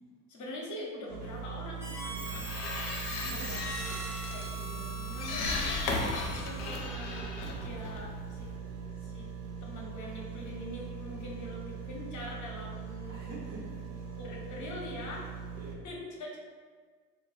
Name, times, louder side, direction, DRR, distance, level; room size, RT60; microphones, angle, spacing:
voice 1, 0.3-2.5 3.2-4.0 4.3-5.7 6.3-7.4 7.6-8.5 9.0-9.3 9.6-13.2 14.2-15.3 15.8-16.4, left 1 dB, 40° left, -2 dB, 0.8 m, -43 dB
sound 1, 1.1-15.8, right 6 dB, 75° right, 0.8 m, -41 dB
Harmonica, 1.8-6.8, right 1 dB, 5° right, 0.3 m, -43 dB
sound 2, 2.1-8.6, left 3 dB, 70° left, 0.6 m, -37 dB
voice 2, 2.9-3.5 13.1-14.2 15.5-15.9, right 2 dB, 35° right, -8 dB, 0.8 m, -48 dB
2.5 x 2.2 x 3.1 m, 1.5 s
hypercardioid pair, 60°, 47 cm